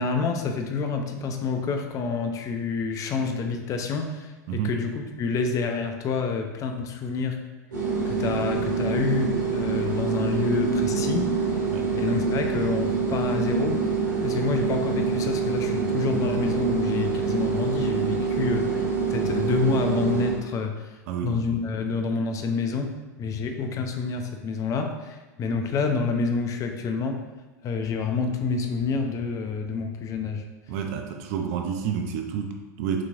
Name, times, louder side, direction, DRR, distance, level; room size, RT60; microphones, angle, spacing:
voice 1, 0.0-7.4 8.0-11.6 11.9-14.0 14.2-22.9 23.2-27.2 27.6-30.4, left 4 dB, 35° left, 5 dB, 0.6 m, -28 dB
sound 1, 7.7-20.4, right 5 dB, 90° right, 1.5 m, -26 dB
voice 2, 21.1-21.6 30.7-33.0, right 7 dB, 60° right, 4 dB, 0.5 m, -29 dB
5.9 x 3.1 x 2.5 m, 1.2 s
hypercardioid pair, 90°, 10 cm